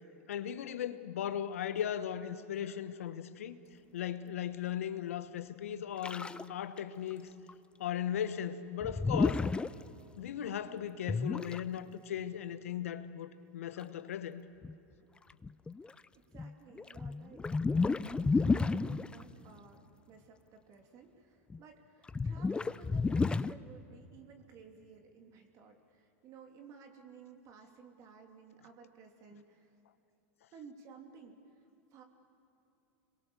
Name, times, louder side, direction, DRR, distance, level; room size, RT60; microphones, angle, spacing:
voice 1, 0.3-3.6 3.9-7.3 7.8-9.4 10.2-14.4, left 9 dB, 85° left, 1.2 m, -37 dB
sound 1, 6.0-6.5 6.8-6.9 7.1-7.2 7.5-7.6 8.8-9.7 11.1-11.6 13.8-13.9 14.6-14.8 15.3-15.9 16.3-19.2 21.5-21.6 22.1-23.5, left 4 dB, 15° left, 0.5 m, -31 dB
voice 2, 16.1-29.7 30.5-32.0, right 5 dB, 45° right, 3.0 m, -56 dB
27.0 x 22.0 x 7.0 m
hypercardioid pair, 105°, 7 cm